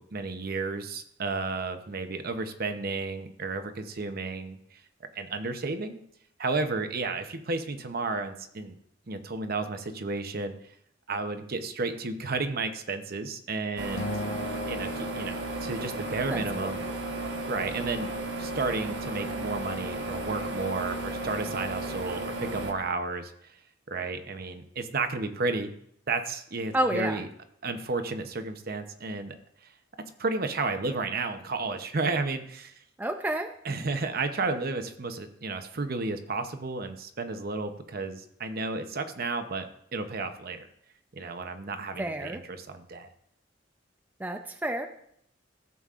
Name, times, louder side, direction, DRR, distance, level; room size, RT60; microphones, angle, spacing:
voice 1, 0.0-4.8 5.1-6.0 6.4-8.7 9.1-10.5 11.1-14.1 14.7-16.8 17.5-18.1 18.4-23.6 23.9-25.7 26.1-27.3 27.6-29.4 30.2-32.7 33.6-39.7 39.9-40.7 41.1-43.1, right 3 dB, 55° right, 8 dB, 0.8 m, -32 dB
sound 1, 13.8-22.7, right 2 dB, 75° right, 1.2 m, -34 dB
Acoustic guitar, 14.0-16.4, left 2 dB, 90° left, 0.8 m, -38 dB
voice 2, 16.3-16.7 26.7-27.2 33.0-33.5 42.0-42.4 44.2-44.9, right 1 dB, 10° right, 5 dB, 0.4 m, -30 dB
15.0 x 7.1 x 2.5 m, 0.71 s
head